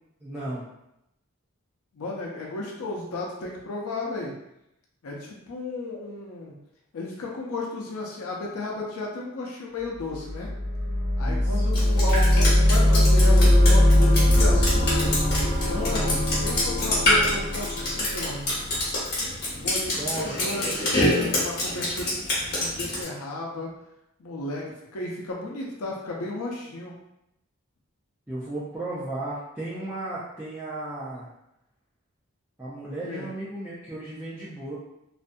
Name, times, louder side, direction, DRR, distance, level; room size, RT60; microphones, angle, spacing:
voice 1, 0.2-0.7 11.2-11.7 19.9-21.1 28.3-31.3 32.6-34.8, right 2 dB, 10° right, -11 dB, 0.4 m, -35 dB
voice 2, 1.9-4.3 5.0-6.5 6.9-10.5 11.2-15.1 15.6-18.5 19.5-23.7 24.2-24.6 24.9-26.9 33.1-33.3, left 2 dB, 90° left, -2 dB, 0.5 m, -34 dB
sound 1, 10.1-19.0, left 1 dB, 70° right, 1.0 m, -21 dB
Drip, 11.7-23.0, left 1 dB, 50° left, 1.0 m, -26 dB
2.5 x 2.2 x 2.5 m, 0.85 s
head